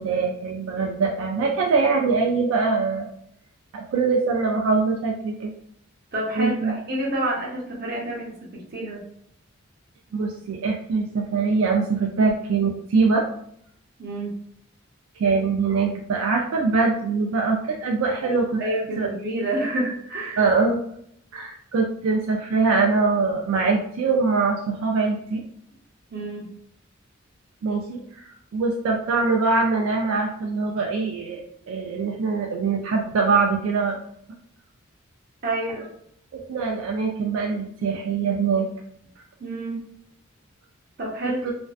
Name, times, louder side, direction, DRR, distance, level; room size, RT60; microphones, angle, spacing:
voice 1, 0.0-3.1 3.7-5.5 6.4-6.7 10.1-13.3 15.2-18.5 19.0-19.1 20.4-20.8 21.3-25.4 27.6-34.0 36.3-38.7 41.2-41.5, right 4 dB, 80° right, 0 dB, 0.3 m, -23 dB
voice 2, 6.1-9.0 14.0-14.3 18.2-20.5 26.1-26.5 35.4-35.9 39.4-39.8 41.0-41.4, right 1 dB, 50° right, -3 dB, 0.7 m, -28 dB
2.5 x 2.1 x 2.3 m, 0.69 s
head